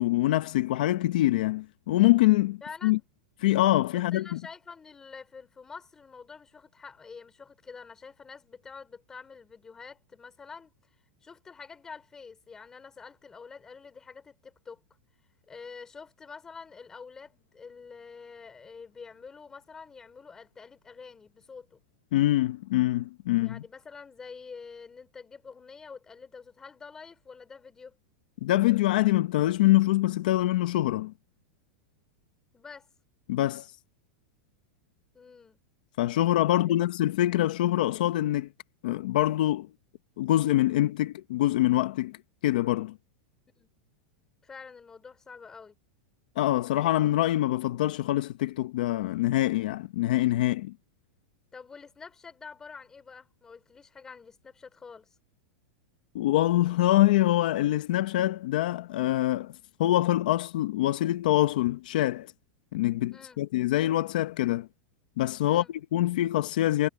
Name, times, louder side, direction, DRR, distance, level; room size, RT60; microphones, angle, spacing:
voice 1, 0.0-3.0 3.4-4.4 22.1-23.6 28.4-31.1 33.3-33.7 36.0-38.5 38.8-39.7 40.2-42.2 42.4-43.0 46.4-50.7 56.1-59.5 59.8-62.3 62.7-64.7 65.2-66.9, left 15 dB, 55° left, 0.9 m, -25 dB
voice 2, 2.6-3.0 3.9-10.7 11.2-14.8 15.5-21.8 23.4-28.0 32.5-32.9 35.1-35.6 36.4-36.8 43.6-43.7 44.4-45.8 51.5-55.1 63.1-63.4 65.5-65.7, left 5 dB, 10° left, 3.6 m, -47 dB
supercardioid pair, 180°, 5 cm